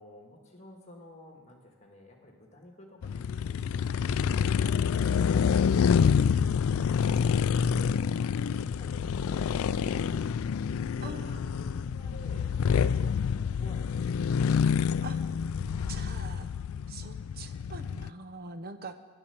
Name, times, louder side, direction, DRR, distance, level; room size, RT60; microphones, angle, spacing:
voice 1, 0.0-4.8 11.0-14.5 15.6-16.1, left 1 dB, 30° left, 2 dB, 1.8 m, -54 dB
sound 1, 3.0-18.1, left 7 dB, 70° left, 0.3 m, -27 dB
voice 2, 4.6-5.8 7.0-7.4 11.0-11.4 15.0-15.3 15.9-16.5 16.9-19.0, right 3 dB, 45° right, 9 dB, 0.7 m, -45 dB
sound 2, 8.9-16.0, left 1 dB, 20° right, 5.0 m, -46 dB
11.5 x 10.5 x 7.1 m, 1.4 s
head